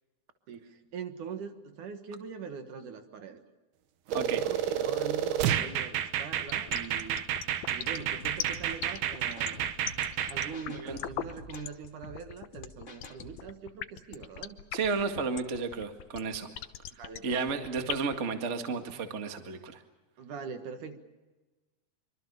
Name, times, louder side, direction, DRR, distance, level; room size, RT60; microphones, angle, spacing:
voice 1, 0.5-3.4 4.1-7.2 7.7-9.7 10.3-14.6 17.0-17.7 20.2-21.0, right 6 dB, 60° right, 7 dB, 2.8 m, -42 dB
sound 1, 4.1-10.5, right 10 dB, 75° right, 3.1 m, -30 dB
sound 2, 6.4-18.2, left 12 dB, 75° left, 2.7 m, -39 dB
sound 3, 8.2-13.5, left 2 dB, 30° left, 1.4 m, -49 dB
voice 2, 10.7-11.0 14.7-16.5 17.2-19.8, right 4 dB, 45° right, 6 dB, 0.9 m, -32 dB
25.5 x 25.0 x 6.8 m, 1.2 s
omnidirectional pair, 4.6 m